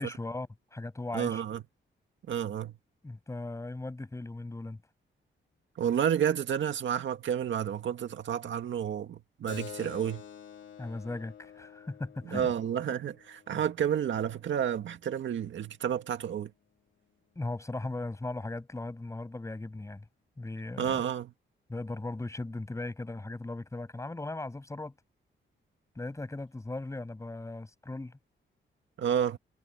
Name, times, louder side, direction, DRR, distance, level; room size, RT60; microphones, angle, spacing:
voice 1, 0.0-1.4 3.0-4.8 10.8-12.5 17.4-20.0 20.4-21.0 21.7-24.9 26.0-28.2, left 2 dB, 15° left, 6.0 m, -38 dB
voice 2, 1.1-1.6 2.3-2.7 5.8-10.2 12.3-16.5 20.8-21.3 29.0-29.4, right 9 dB, 70° right, 1.9 m, -30 dB
Keyboard (musical), 9.5-14.6, left 8 dB, 70° left, 2.7 m, -48 dB
wide cardioid pair, 140°, 20 cm